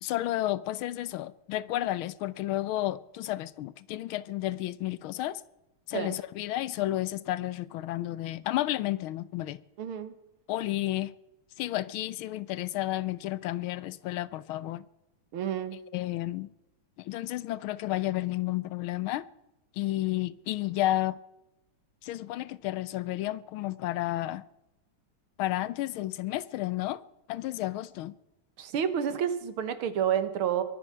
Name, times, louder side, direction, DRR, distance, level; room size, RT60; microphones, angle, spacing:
voice 1, 0.0-5.4 5.9-9.6 10.5-11.1 11.6-14.8 15.9-16.5 17.0-19.3 19.8-21.2 22.0-24.4 25.4-27.0 27.3-28.1, left 15 dB, 80° left, 1.5 m, -31 dB
voice 2, 9.8-10.1 15.3-15.8 28.6-30.6, right 8 dB, 85° right, 2.1 m, -29 dB
22.5 x 9.3 x 5.7 m
omnidirectional pair, 2.3 m